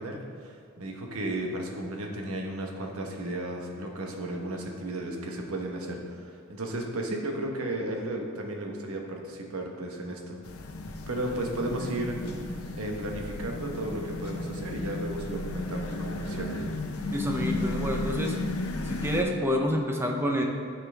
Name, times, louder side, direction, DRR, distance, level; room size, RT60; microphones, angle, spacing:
voice 1, 0.0-10.4 11.1-16.7, right 1 dB, 80° right, 1 dB, 1.1 m, -34 dB
sound 1, 10.4-19.2, left 2 dB, 90° left, 0.8 m, -34 dB
voice 2, 17.1-18.4 18.9-20.4, equal, 10° right, 2 dB, 0.6 m, -28 dB
9.6 x 5.9 x 3.4 m, 2.2 s
head